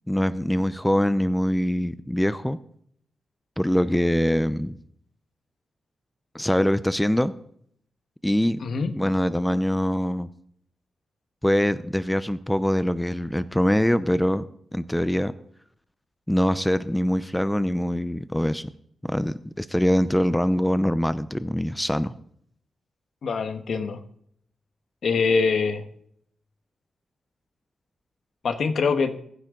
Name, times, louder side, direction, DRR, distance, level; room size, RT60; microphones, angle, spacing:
voice 1, 0.1-2.6 3.6-4.8 6.3-7.3 8.2-8.6 8.9-10.3 11.4-14.4 14.7-15.3 16.3-18.7 19.0-22.1, equal, 5° left, 13 dB, 0.6 m, -23 dB
voice 2, 8.6-8.9 23.2-24.0 25.0-25.9 28.4-29.1, left 4 dB, 70° left, 8 dB, 1.3 m, -24 dB
23.0 x 10.0 x 3.8 m, 0.67 s
cardioid pair, 85°, 0 cm